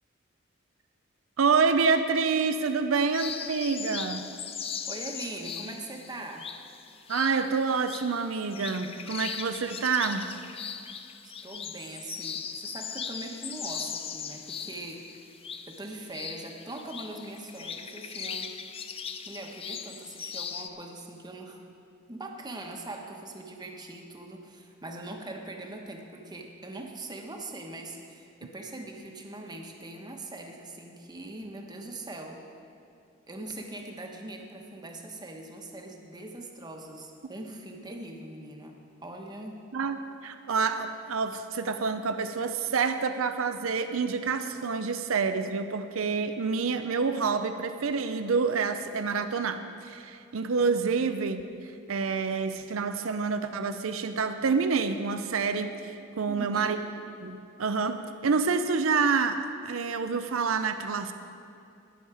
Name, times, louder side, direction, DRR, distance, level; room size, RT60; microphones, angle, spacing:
voice 1, 1.4-4.3 7.1-10.3 39.7-56.8 57.2-61.1, right 5 dB, 85° right, 9 dB, 0.6 m, -28 dB
sound 1, 3.1-20.7, left 7 dB, 30° left, 0.5 m, -39 dB
voice 2, 4.9-6.5 11.2-15.1 15.7-18.5 19.2-21.6 22.1-32.4 33.3-39.6 56.3-56.8, right 2 dB, 20° right, 2 dB, 1.1 m, -41 dB
19.5 x 7.2 x 4.9 m, 2.5 s
head